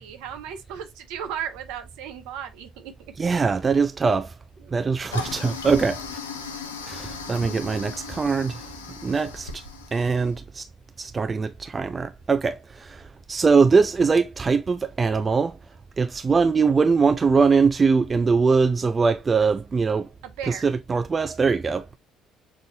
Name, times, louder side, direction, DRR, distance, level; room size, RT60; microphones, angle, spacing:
voice 1, 0.0-2.9 4.6-5.5 20.2-20.7, right 8 dB, 70° right, 0.8 m, -36 dB
voice 2, 3.2-4.3 4.7-6.0 6.9-8.6 9.0-9.5 9.9-10.6 11.0-13.0 13.3-15.5 16.0-20.1 20.5-21.8, right 5 dB, 30° right, 0.4 m, -22 dB
Toilet flush, 5.1-10.3, left 4 dB, 85° left, 0.5 m, -37 dB
6.6 x 2.5 x 2.6 m
hypercardioid pair, 55°, 0 cm